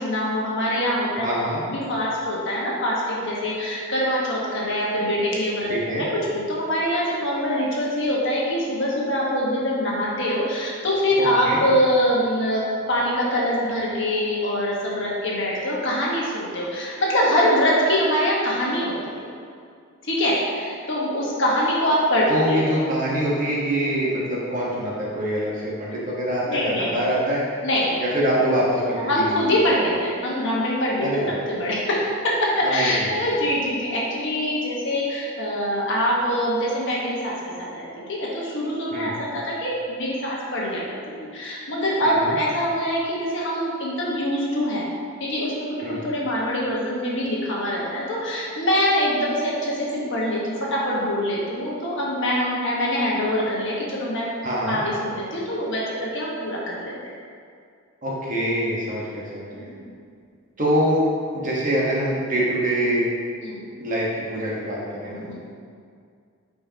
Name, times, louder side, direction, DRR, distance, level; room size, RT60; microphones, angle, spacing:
voice 1, 0.0-1.3 1.7-5.7 6.0-6.1 6.3-19.2 20.0-22.7 26.4-26.9 27.6-28.0 29.1-31.1 31.5-40.8 41.3-44.9 45.2-54.3 54.6-57.1 59.5-59.9 63.4-63.7 65.0-65.4, equal, 55° left, -5 dB, 1.4 m, -24 dB
voice 2, 1.2-1.6 5.7-6.0 11.2-11.6 22.3-27.4 28.0-29.4 31.0-31.4 32.6-33.3 38.9-39.1 42.0-42.4 45.8-46.0 54.4-54.8 58.0-59.7 60.6-61.1 61.3-63.1 63.8-65.3, equal, 35° right, -5 dB, 1.3 m, -24 dB
8.5 x 4.8 x 2.9 m, 2.2 s
head